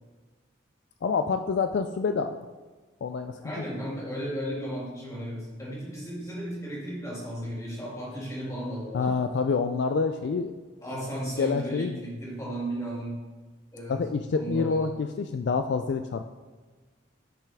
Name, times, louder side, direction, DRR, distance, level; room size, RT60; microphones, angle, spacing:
voice 1, 1.0-2.5 3.0-3.4 8.9-10.5 11.4-12.0 13.9-16.3, left 5 dB, 60° left, 7 dB, 0.3 m, -27 dB
voice 2, 3.4-9.1 10.8-13.2 13.7-14.0 14.3-14.9, equal, 15° left, -5 dB, 2.2 m, -35 dB
10.0 x 5.8 x 3.5 m, 1.3 s
head